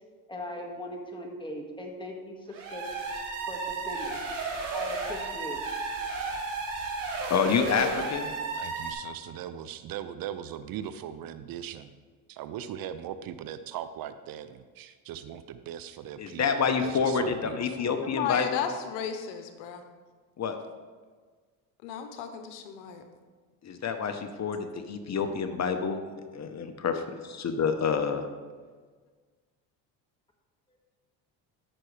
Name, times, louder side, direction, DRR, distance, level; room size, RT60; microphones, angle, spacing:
voice 1, 0.3-2.9 3.5-4.2 4.7-5.6, left 1 dB, 10° left, 1 dB, 1.9 m, -39 dB
sound 1, 2.5-8.9, right 3 dB, 80° right, 2.8 m, -33 dB
voice 2, 7.3-8.3 16.2-18.5 20.4-20.6 23.6-26.0 26.3-26.9 27.3-28.3, left 6 dB, 40° left, 7 dB, 1.0 m, -28 dB
voice 3, 8.6-11.9 12.3-16.4 16.8-17.9, right 10 dB, 55° right, 11 dB, 0.6 m, -39 dB
voice 4, 18.0-19.8 21.8-23.0, left 8 dB, 80° left, 7 dB, 1.0 m, -34 dB
13.0 x 6.1 x 3.3 m, 1.5 s
supercardioid pair, 80°, 42 cm